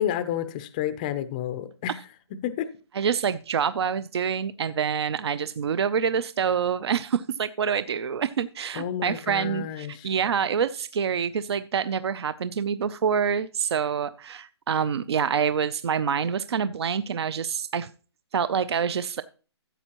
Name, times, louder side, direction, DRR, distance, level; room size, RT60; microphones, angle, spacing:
voice 1, 0.0-1.9 2.4-2.7 8.7-10.1, left 10 dB, 15° left, 0.4 m, -30 dB
voice 2, 2.9-17.9 18.3-19.2, right 7 dB, 65° right, 0.5 m, -26 dB
14.5 x 8.0 x 3.0 m
hypercardioid pair, 165°, 15 cm